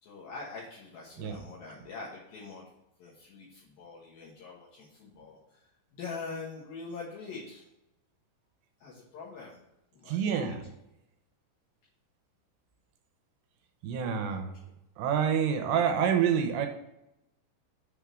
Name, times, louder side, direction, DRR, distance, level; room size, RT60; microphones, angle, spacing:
voice 1, 0.0-2.6 3.0-5.6 5.9-7.6 8.8-9.6 9.9-10.6 14.4-14.5, left 4 dB, 70° left, -6 dB, 2.6 m, -43 dB
voice 2, 10.1-10.6 13.8-14.5 15.0-16.7, right 7 dB, 80° right, 5 dB, 2.6 m, -27 dB
6.6 x 3.6 x 6.0 m, 0.89 s
omnidirectional pair, 4.9 m